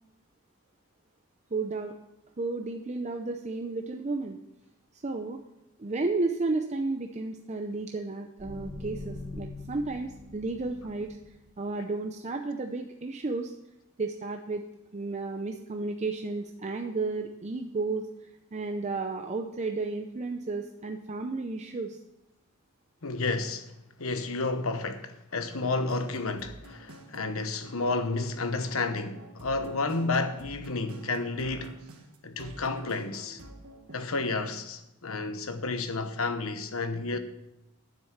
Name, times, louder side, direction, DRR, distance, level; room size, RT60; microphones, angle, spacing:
voice 1, 1.5-1.9 2.4-4.4 5.0-5.4 5.8-11.2 11.6-13.5 14.0-14.6 14.9-18.1 18.5-22.0, right 3 dB, 30° right, 0.6 m, -32 dB
sound 1, 8.4-11.5, left 2 dB, 10° right, 3.4 m, -42 dB
voice 2, 23.0-23.7 24.0-31.8 32.2-33.4 33.9-37.2, left 3 dB, 70° left, 1.0 m, -31 dB
sound 2, 25.7-34.2, right 1 dB, 80° right, 1.5 m, -49 dB
9.7 x 7.6 x 7.2 m
head